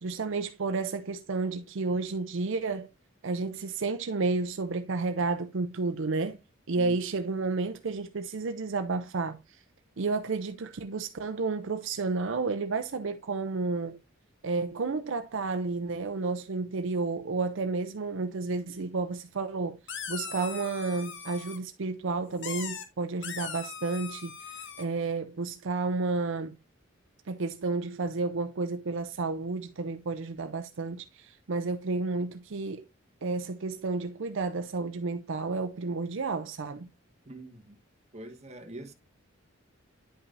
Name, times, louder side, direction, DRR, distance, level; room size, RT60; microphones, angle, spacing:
voice 1, 0.0-2.9 3.2-6.4 6.7-9.6 10.0-14.0 14.4-19.8 20.1-26.6 27.3-32.8 33.2-36.9, right 3 dB, 70° right, 0.6 m, -31 dB
sound 1, 19.9-21.6 22.4-22.8 23.2-24.8, left 7 dB, 65° left, 1.3 m, -39 dB
voice 2, 37.3-37.8 38.1-38.9, right 1 dB, 35° right, 1.2 m, -44 dB
9.9 x 5.6 x 2.6 m
head